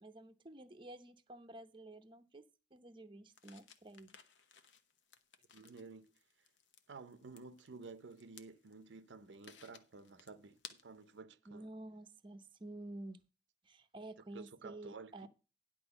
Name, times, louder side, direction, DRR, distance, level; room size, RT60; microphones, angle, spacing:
voice 1, 0.0-4.2 11.5-13.2 13.6-15.3, right 1 dB, 25° right, 0.7 m, -51 dB
sound 1, 3.3-11.2, left 7 dB, 80° left, 1.0 m, -60 dB
voice 2, 5.5-6.1 6.9-11.7 14.3-15.3, right 4 dB, 75° right, 0.7 m, -53 dB
11.0 x 4.5 x 6.9 m
head